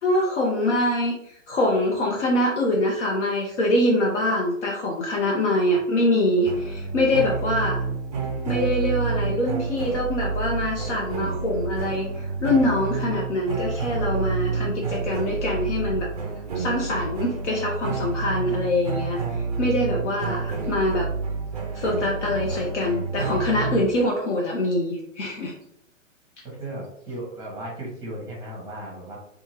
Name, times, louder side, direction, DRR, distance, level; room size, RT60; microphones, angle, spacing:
voice 1, 0.0-7.8 8.5-16.1 16.5-21.1 21.7-25.5, left 1 dB, 60° left, -2 dB, 0.7 m, -24 dB
sound 1, 6.4-23.8, right 4 dB, 30° right, 0.4 m, -29 dB
voice 2, 26.6-29.2, right 1 dB, 10° right, -3 dB, 0.8 m, -35 dB
2.7 x 2.4 x 2.9 m, 0.73 s
figure-of-eight pair, 130°, 40 cm